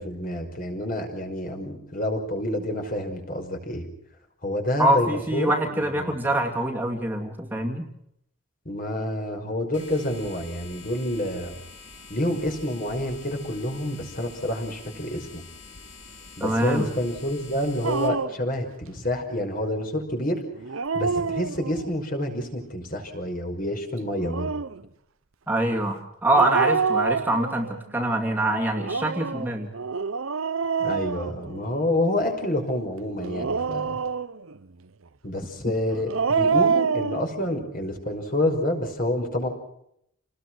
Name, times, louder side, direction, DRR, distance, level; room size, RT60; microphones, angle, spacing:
voice 1, 0.0-3.9 4.4-6.2 8.7-11.6 12.1-15.4 16.4-20.4 20.9-24.5 30.8-34.0 35.2-39.5, left 1 dB, 40° left, 4 dB, 5.5 m, -28 dB
voice 2, 4.8-7.9 16.4-16.8 25.5-29.7, right 1 dB, 10° right, 1 dB, 2.4 m, -24 dB
sound 1, 9.7-18.1, left 4 dB, 60° left, 4.8 m, -46 dB
Dog, 17.8-18.5 20.6-21.9 24.0-24.8 26.3-27.8 28.7-31.9 33.2-34.6 35.9-37.2, right 5 dB, 80° right, 0.8 m, -27 dB
29.0 x 20.0 x 6.2 m, 0.74 s
head